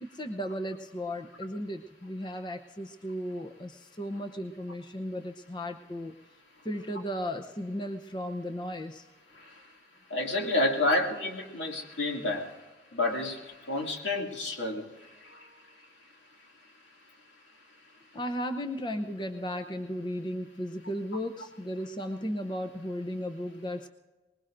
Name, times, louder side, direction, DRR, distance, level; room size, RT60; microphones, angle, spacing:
voice 1, 0.0-6.1 6.6-9.1 18.1-23.9, equal, 25° left, 6 dB, 0.7 m, -35 dB
voice 2, 10.1-12.5 12.9-14.9 15.2-15.5, left 2 dB, 85° left, 2 dB, 2.4 m, -29 dB
24.0 x 21.0 x 2.6 m, 1.1 s
head